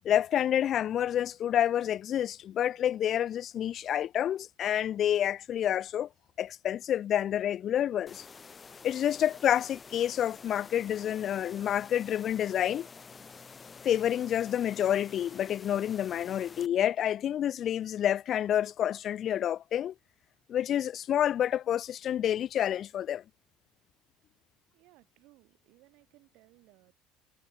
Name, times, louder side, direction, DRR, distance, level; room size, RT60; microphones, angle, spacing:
voice 1, 0.0-6.1 6.4-8.2 8.8-12.9 13.8-19.9 20.5-23.2, left 10 dB, 45° left, 0.4 m, -28 dB
sound 1, 8.1-16.7, left 5 dB, 25° left, 3.1 m, -49 dB
voice 2, 24.7-26.9, right 20 dB, 65° right, 7.5 m, -61 dB
supercardioid pair, 115°, 0 cm